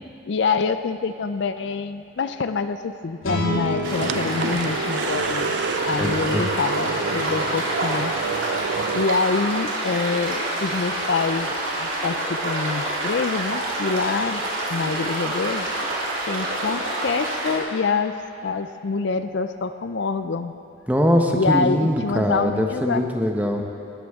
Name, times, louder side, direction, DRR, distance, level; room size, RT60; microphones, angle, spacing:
voice 1, 0.3-5.5 5.8-8.1 8.9-11.5 11.8-14.4 14.7-15.7 16.3-18.1 18.4-20.5 21.3-23.0 23.6-23.7, left 4 dB, 60° left, 10 dB, 0.4 m, -26 dB
sound 1, 3.2-6.5, left 1 dB, 90° left, 3.0 m, -31 dB
sound 2, 3.5-9.1, right 5 dB, 60° right, 0.3 m, -29 dB
sound 3, 3.8-17.6, right 1 dB, 75° right, 3.1 m, -27 dB
voice 2, 6.0-6.4 20.9-23.6, equal, 10° right, 2 dB, 0.9 m, -22 dB
20.0 x 13.0 x 3.6 m, 2.7 s
head